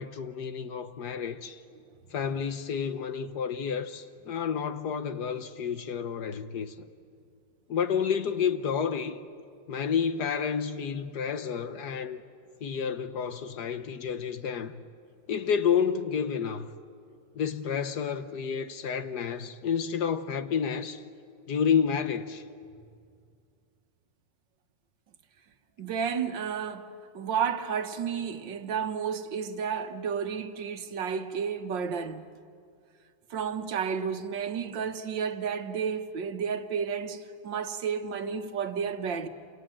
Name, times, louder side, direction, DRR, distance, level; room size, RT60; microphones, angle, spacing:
voice 1, 0.0-1.6 2.1-6.9 7.7-9.2 9.7-12.2 12.6-14.8 15.3-16.7 17.4-21.0 21.5-22.4, left 7 dB, 65° left, 1.5 m, -30 dB
voice 2, 25.8-26.9 27.1-32.2 33.3-39.3, right 6 dB, 75° right, 1.9 m, -31 dB
29.0 x 27.0 x 7.7 m
omnidirectional pair, 2.0 m